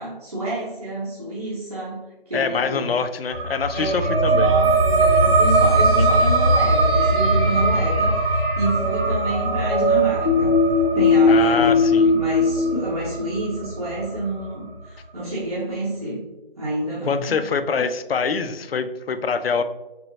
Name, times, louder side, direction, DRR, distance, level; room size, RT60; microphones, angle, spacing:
voice 1, 0.0-2.9 3.7-10.5 10.8-11.8 12.1-16.2 16.6-17.3 17.7-17.8, right 1 dB, 40° right, -8 dB, 0.8 m, -29 dB
voice 2, 2.3-4.5 6.0-6.3 11.3-12.1 17.1-19.6, left 5 dB, 85° left, 10 dB, 0.4 m, -24 dB
sound 1, 3.3-14.5, right 2 dB, 80° right, 0.8 m, -21 dB
sound 2, 4.6-12.8, left 3 dB, 60° left, 0.8 m, -22 dB
4.3 x 2.1 x 2.7 m, 0.99 s
figure-of-eight pair, 175°, 29 cm